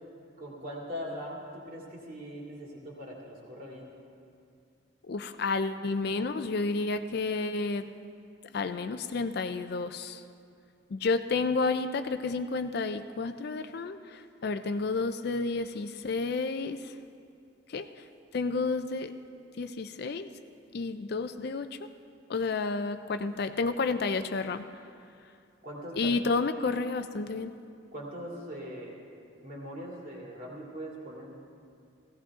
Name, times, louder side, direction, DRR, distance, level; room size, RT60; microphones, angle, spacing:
voice 1, 0.4-3.9 25.6-26.2 27.9-29.0 29.4-31.3, equal, 45° right, -3 dB, 2.4 m, -41 dB
voice 2, 5.1-7.9 8.5-10.2 10.9-16.9 17.7-17.9 18.3-19.1 19.6-20.3 20.7-21.8 22.3-24.7 26.0-27.5, left 3 dB, 50° left, 10 dB, 0.4 m, -31 dB
16.5 x 15.5 x 3.6 m, 2.4 s
head